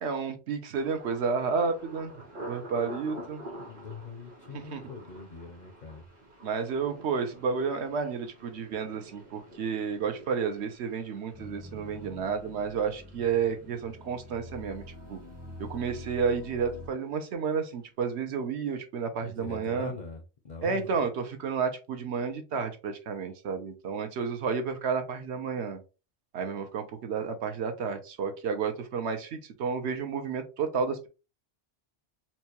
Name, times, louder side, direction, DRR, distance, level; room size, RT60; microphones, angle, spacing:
voice 1, 0.0-2.1 2.4-3.4 4.5-4.8 6.4-14.8 15.1-15.2 15.6-19.9 20.6-25.8 26.3-31.1, right 5 dB, 70° right, 1.0 m, -31 dB
Thunder, 0.7-16.5 16.8-17.4 17.8-18.1, equal, 50° right, 1.2 m, -48 dB
voice 2, 3.7-6.1 19.2-20.9, left 4 dB, 55° left, 0.5 m, -42 dB
sound 1, 11.3-16.9, left 1 dB, 25° right, 0.7 m, -46 dB
4.3 x 2.3 x 2.8 m
omnidirectional pair, 1.2 m